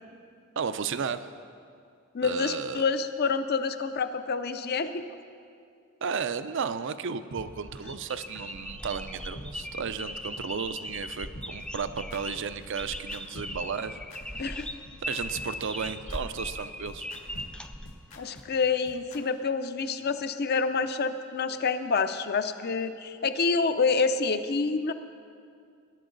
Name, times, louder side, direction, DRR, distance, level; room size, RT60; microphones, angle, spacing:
voice 1, 0.6-1.3 2.2-2.8 6.0-14.0 15.1-17.1, right 6 dB, 60° right, 12 dB, 0.5 m, -33 dB
voice 2, 2.1-5.0 14.4-14.7 18.2-24.9, left 4 dB, 50° left, 10 dB, 0.6 m, -27 dB
sound 1, 7.4-7.5 7.8-8.0 8.3-8.4 8.9-9.0 9.3-9.5 9.8-10.0 10.3-10.4 10.9-11.0 11.3-19.2, left 1 dB, 75° left, 1.9 m, -46 dB
sound 2, 7.5-18.4, left 1 dB, 5° left, 0.4 m, -39 dB
19.5 x 11.0 x 3.9 m, 2.3 s
head